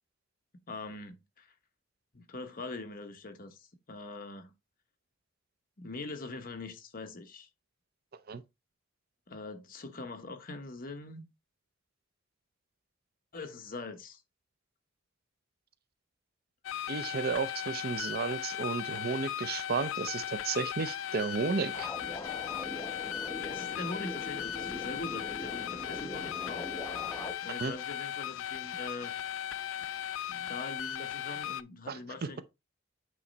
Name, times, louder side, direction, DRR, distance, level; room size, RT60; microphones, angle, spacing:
voice 1, 0.7-1.5 2.1-4.5 5.8-7.5 9.3-11.2 13.3-14.2 23.4-26.7 27.4-29.1 30.3-32.4, left 3 dB, 45° left, 1.1 m, -43 dB
sound 1, 16.6-31.6, left 10 dB, 85° left, 0.4 m, -37 dB
voice 2, 16.9-21.9 27.6-27.7 31.9-32.0, right 5 dB, 50° right, 0.6 m, -33 dB
sound 2, 21.7-27.3, left 1 dB, 15° left, 0.8 m, -42 dB
8.5 x 3.2 x 4.0 m
head